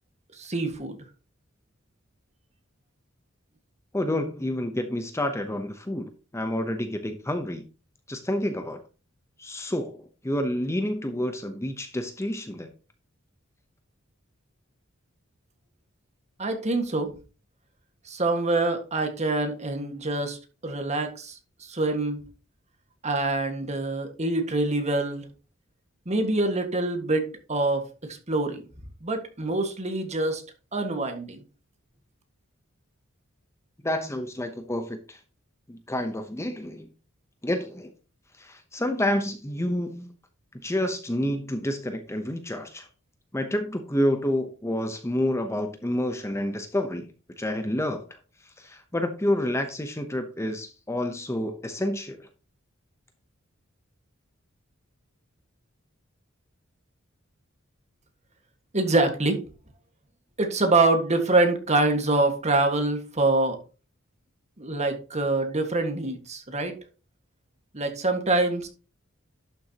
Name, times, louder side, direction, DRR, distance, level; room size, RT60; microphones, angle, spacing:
voice 1, 0.4-1.0 16.4-17.1 18.1-22.2 23.0-25.3 26.1-27.8 28.3-28.6 29.0-30.4 30.7-31.4 58.7-59.4 60.4-63.6 64.6-66.8 67.7-68.7, right 2 dB, 35° right, 5 dB, 1.7 m, -25 dB
voice 2, 3.9-7.6 8.1-8.8 9.4-12.7 33.8-35.2 35.7-36.9 37.4-37.9 38.4-40.1 40.6-42.9 43.3-47.1 47.4-48.2 48.6-52.3, left 1 dB, 15° left, 7 dB, 0.8 m, -29 dB
11.5 x 6.8 x 2.9 m, 0.34 s
head